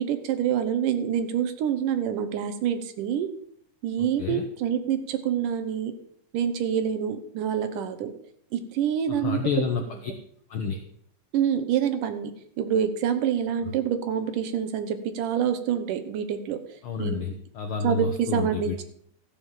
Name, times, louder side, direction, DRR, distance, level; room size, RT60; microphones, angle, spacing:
voice 1, 0.0-3.3 3.8-5.9 6.3-8.1 8.5-9.4 11.3-16.6 17.0-17.3 17.8-18.8, right 8 dB, 90° right, 9 dB, 2.6 m, -26 dB
voice 2, 4.0-4.4 9.1-10.1 10.5-10.8 16.8-18.8, left 5 dB, 75° left, 4 dB, 1.2 m, -30 dB
14.0 x 5.1 x 7.3 m, 0.65 s
omnidirectional pair, 3.6 m